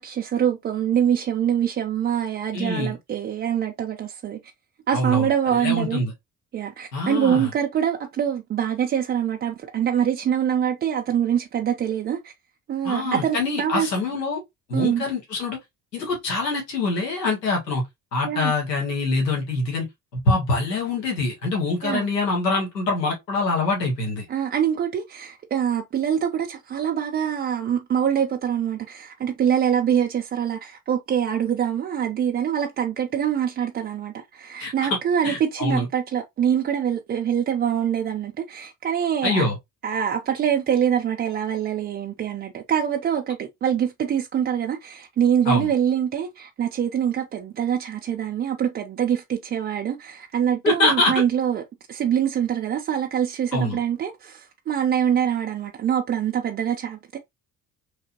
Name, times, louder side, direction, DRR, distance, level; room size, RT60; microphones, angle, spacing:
voice 1, 0.0-4.4 4.9-6.0 6.5-12.3 12.7-13.9 14.7-15.0 18.2-18.5 21.8-22.1 24.3-39.4 39.8-51.6 51.9-57.2, right 9 dB, 25° right, 0.3 m, -24 dB
voice 2, 2.5-2.9 4.9-5.3 5.6-6.1 6.9-7.5 12.8-14.4 14.7-15.6 15.9-17.8 18.1-19.9 20.1-24.3 34.6-35.0 35.2-35.9 39.2-39.6 45.5-45.7 50.6-51.1 53.5-53.8, left 2 dB, 85° left, 0.9 m, -24 dB
3.2 x 2.8 x 2.7 m
figure-of-eight pair, 45°, 48 cm